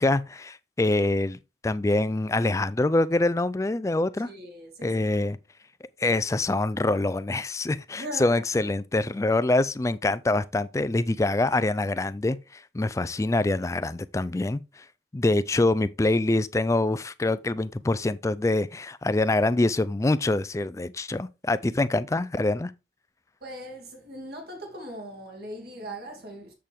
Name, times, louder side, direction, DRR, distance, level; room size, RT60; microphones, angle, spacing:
voice 1, 0.0-1.4 1.6-4.3 4.8-5.4 6.0-14.6 15.1-22.7, left 2 dB, 15° left, 0.3 m, -25 dB
voice 2, 4.2-5.0 7.9-8.4 23.4-26.5, right 1 dB, 55° right, 2.5 m, -39 dB
7.5 x 6.6 x 3.5 m
head